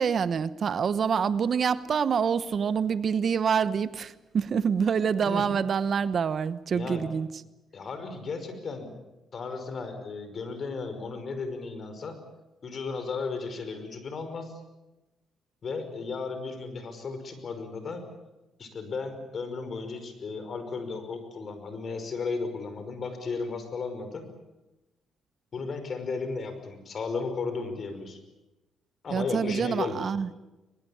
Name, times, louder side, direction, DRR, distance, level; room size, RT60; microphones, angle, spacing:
voice 1, 0.0-7.3 29.1-30.3, right 6 dB, 50° right, 15 dB, 1.0 m, -26 dB
voice 2, 6.7-7.1 7.7-8.9 9.3-12.2 12.6-14.6 15.6-18.1 18.6-24.3 25.5-28.2 29.0-30.1, left 4 dB, 50° left, 9 dB, 5.3 m, -34 dB
22.0 x 21.5 x 8.6 m, 1.0 s
cardioid pair, 90°, 0 cm